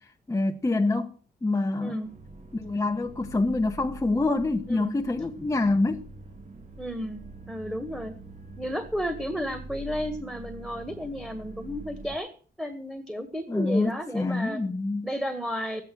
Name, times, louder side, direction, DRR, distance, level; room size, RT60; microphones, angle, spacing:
voice 1, 0.0-2.0 2.5-6.1 13.5-15.1, left 2 dB, 15° left, 1.0 m, -26 dB
voice 2, 1.8-2.1 4.7-5.0 6.8-7.2 7.5-8.1 8.6-12.3 12.6-14.6 15.0-15.8, equal, ahead, 1.8 m, -32 dB
sound 1, 2.0-12.2, right 2 dB, 45° right, 2.2 m, -44 dB
13.0 x 9.0 x 6.1 m
cardioid pair, 90°, 18 cm